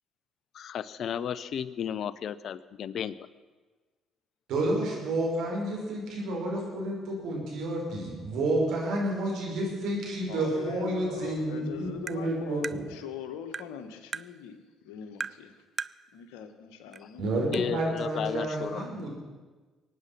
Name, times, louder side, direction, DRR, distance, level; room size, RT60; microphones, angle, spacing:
voice 1, 0.5-3.3 17.5-18.9, left 8 dB, 60° left, 17 dB, 0.7 m, -34 dB
voice 2, 4.5-12.8 17.2-19.1, right 1 dB, 70° right, -2 dB, 5.5 m, -30 dB
voice 3, 10.3-15.5 16.1-17.3, left 8 dB, 75° left, 7 dB, 1.5 m, -42 dB
Tap, 12.1-12.2 12.6-12.8 13.5-13.7 14.1-14.3 15.2-15.4 15.8-16.0 16.9-17.0 17.5-17.6, right 5 dB, 40° right, 0.5 m, -35 dB
23.0 x 9.8 x 6.0 m, 1.3 s
hypercardioid pair, 55°, 0 cm